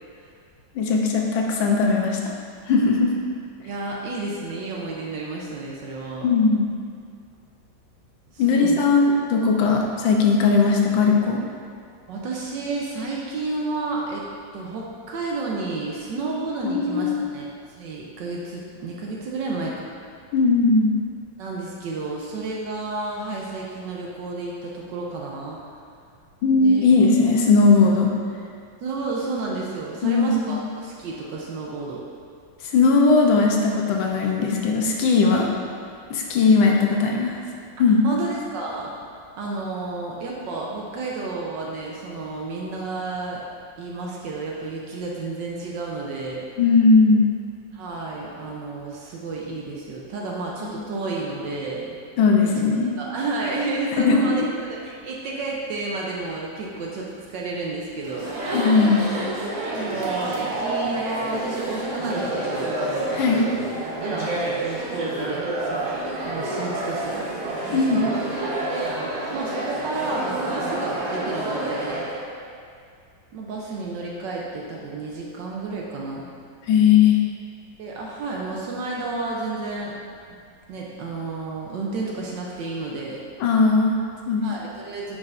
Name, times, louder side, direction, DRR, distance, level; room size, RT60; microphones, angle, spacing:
voice 1, 0.7-2.2 2.7-3.1 6.2-6.7 8.4-11.5 16.6-17.2 20.3-20.9 26.4-28.1 30.0-30.6 32.6-35.5 36.1-37.4 37.8-38.0 46.6-47.3 50.6-50.7 52.2-52.9 54.0-54.3 58.5-59.1 63.1-63.4 67.7-68.0 76.7-77.2 83.4-84.5, left 4 dB, 85° left, 0 dB, 1.5 m, -18 dB
voice 2, 3.6-6.3 8.3-8.8 12.1-14.2 14.5-17.5 17.8-19.9 21.4-25.6 26.5-26.9 28.8-32.0 35.4-35.5 38.0-38.9 39.4-43.4 43.8-46.5 47.7-52.0 52.4-52.5 53.0-54.5 54.8-58.4 59.7-62.8 64.0-65.8 66.2-67.3 67.7-68.2 68.7-68.9 69.3-72.0 73.3-76.3 77.8-79.9 80.7-83.2 84.4-85.2, right 3 dB, 75° right, -3 dB, 1.3 m, -31 dB
Chatter, 58.0-72.2, right 2 dB, 45° right, 1.3 m, -28 dB
9.4 x 4.9 x 2.5 m, 2.3 s
omnidirectional pair, 2.1 m